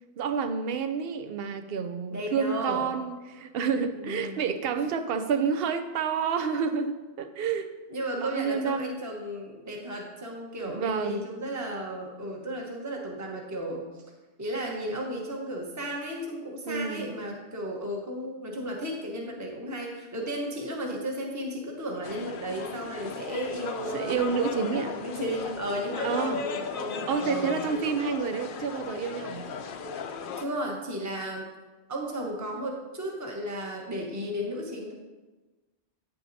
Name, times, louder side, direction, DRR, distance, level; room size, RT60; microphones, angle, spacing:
voice 1, 0.2-7.7 8.1-9.0 10.6-11.3 16.7-17.1 23.9-25.0 26.0-26.4 27.1-29.6, right 6 dB, 65° right, 9 dB, 0.8 m, -29 dB
voice 2, 2.1-2.8 3.9-4.4 7.9-14.0 14.4-24.2 24.9-27.6 30.4-31.5 31.9-34.9, equal, 15° right, -1 dB, 1.0 m, -34 dB
sound 1, 22.0-30.4, left 5 dB, 60° left, 0.7 m, -36 dB
8.7 x 8.4 x 2.7 m, 1.2 s
omnidirectional pair, 1.1 m